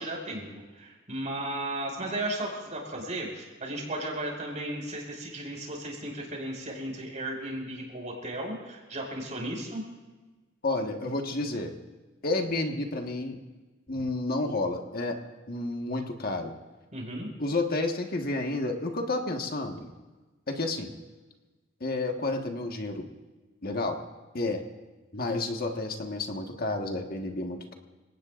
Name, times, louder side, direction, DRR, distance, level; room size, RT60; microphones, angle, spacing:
voice 1, 0.0-9.8 16.9-17.3, right 1 dB, 40° right, -1 dB, 5.4 m, -35 dB
voice 2, 10.6-11.7 12.2-13.4 13.9-15.2 15.5-16.5 17.4-19.9 20.5-20.9 21.8-23.1 23.6-24.0 24.3-24.6 25.1-27.7, left 2 dB, 50° left, 3 dB, 1.5 m, -30 dB
27.5 x 18.0 x 2.6 m, 1.2 s
head